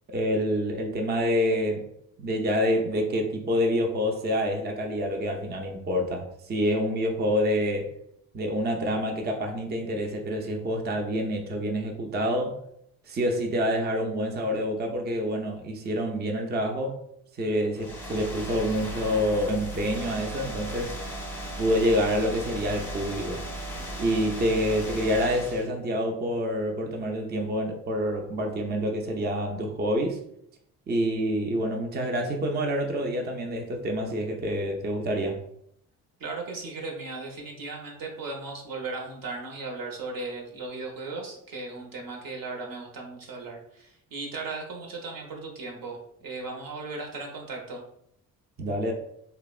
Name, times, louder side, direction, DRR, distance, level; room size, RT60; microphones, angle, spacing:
voice 1, 0.1-1.9 2.2-7.9 8.3-12.6 13.1-17.0 17.3-21.0 21.6-23.4 24.0-30.2 30.9-35.4 48.6-48.9, equal, 30° right, 2 dB, 0.5 m, -27 dB
sound 1, 17.7-25.7, right 1 dB, 5° left, 0.7 m, -36 dB
voice 2, 36.2-47.8, right 3 dB, 70° right, 1 dB, 0.8 m, -37 dB
2.8 x 2.1 x 2.4 m, 0.73 s
supercardioid pair, 60°, 35 cm